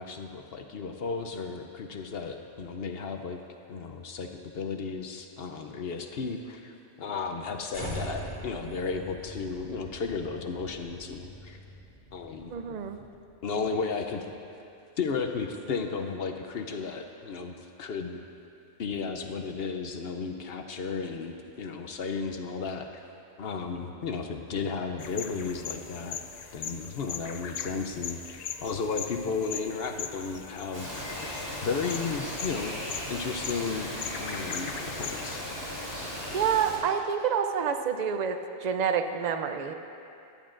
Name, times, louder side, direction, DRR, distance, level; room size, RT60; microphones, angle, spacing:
voice 1, 0.0-3.4 3.7-11.6 12.1-12.5 13.4-14.3 15.0-18.2 18.8-23.0 23.4-26.2 26.5-31.3 31.6-32.8 33.1-33.9 34.2-34.7 35.0-35.4, left 5 dB, 60° left, 5 dB, 0.8 m, -34 dB
sound 1, 7.7-14.0, equal, 40° left, 2.4 m, -42 dB
voice 2, 12.5-13.0 27.7-27.8 36.3-39.7, right 7 dB, 50° right, 7 dB, 0.5 m, -28 dB
sound 2, 25.0-35.4, left 7 dB, 85° left, 0.3 m, -40 dB
Bird vocalization bird call bird song, 30.7-36.8, left 1 dB, 20° left, 2.8 m, -37 dB
16.0 x 11.5 x 2.5 m, 2.6 s
omnidirectional pair, 1.3 m